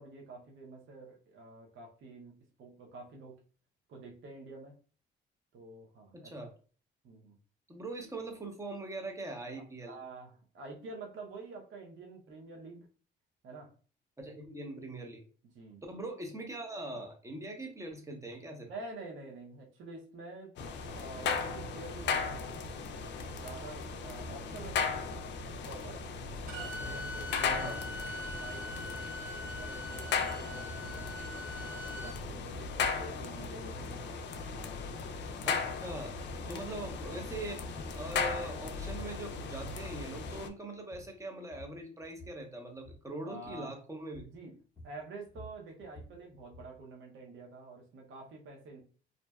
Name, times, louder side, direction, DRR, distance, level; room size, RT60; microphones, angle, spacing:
voice 1, 0.0-3.4 3.9-4.7 5.5-6.5 7.0-7.4 9.9-12.9 13.4-13.7 15.5-15.8 18.7-22.8 23.3-26.0 26.3-31.2 31.7-34.2 34.5-34.9 43.2-43.8 44.3-44.6 44.8-48.8, right 3 dB, 75° right, 1 dB, 0.7 m, -48 dB
voice 2, 6.1-6.5 7.7-10.0 14.2-15.2 15.9-18.7 27.5-27.8 35.5-36.1 36.5-44.3, right 2 dB, 15° right, 3 dB, 0.7 m, -42 dB
sound 1, 20.6-40.5, left 5 dB, 65° left, 0.4 m, -37 dB
Bowed string instrument, 26.5-32.2, left 1 dB, 50° right, 1.4 m, -43 dB
sound 2, 38.3-38.5 38.9-39.9 40.2-40.5 40.8-41.2 41.5-42.4 42.8-43.1 43.4-43.7 44.1-44.4 44.8-46.8, left 1 dB, 20° left, 0.7 m, -51 dB
2.5 x 2.1 x 2.2 m, 0.40 s
cardioid pair, 90°, 20 cm